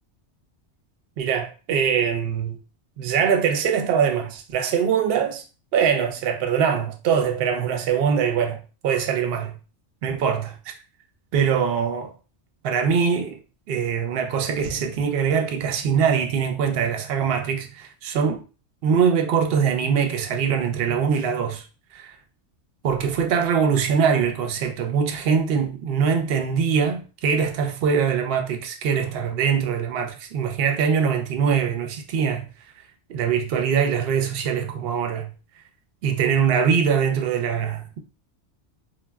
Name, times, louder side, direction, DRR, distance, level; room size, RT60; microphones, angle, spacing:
voice 1, 1.2-2.6 3.0-5.4 5.7-8.6 8.8-9.5 10.0-10.7 11.3-12.1 12.6-13.4 13.7-18.4 18.8-21.7 21.9-22.2 22.8-32.5 33.1-35.3 36.0-38.0, right 7 dB, 65° right, 0.7 m, -22 dB
2.2 x 2.1 x 3.3 m
omnidirectional pair, 1.2 m